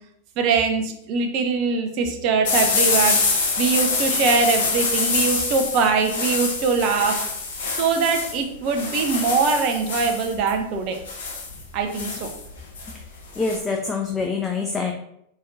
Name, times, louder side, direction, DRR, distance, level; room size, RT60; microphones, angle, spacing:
voice 1, 0.4-3.2 3.6-7.2 7.7-11.0 11.7-12.3, right 5 dB, 40° right, 4 dB, 0.8 m, -22 dB
sound 1, 2.4-13.6, left 4 dB, 60° left, 0.8 m, -25 dB
voice 2, 13.4-14.9, left 4 dB, 15° left, 2 dB, 0.5 m, -25 dB
4.3 x 3.0 x 3.9 m, 0.74 s
figure-of-eight pair, 90°, 0 cm